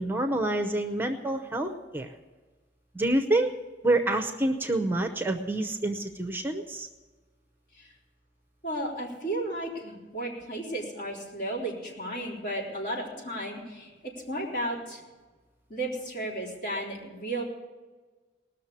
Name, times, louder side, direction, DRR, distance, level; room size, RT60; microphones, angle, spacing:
voice 1, 0.0-2.1 2.9-3.5 3.8-6.9, right 1 dB, 10° right, 6 dB, 0.7 m, -27 dB
voice 2, 8.6-15.0 15.7-17.4, right 1 dB, 55° left, -3 dB, 3.9 m, -34 dB
19.5 x 6.6 x 8.4 m, 1.3 s
head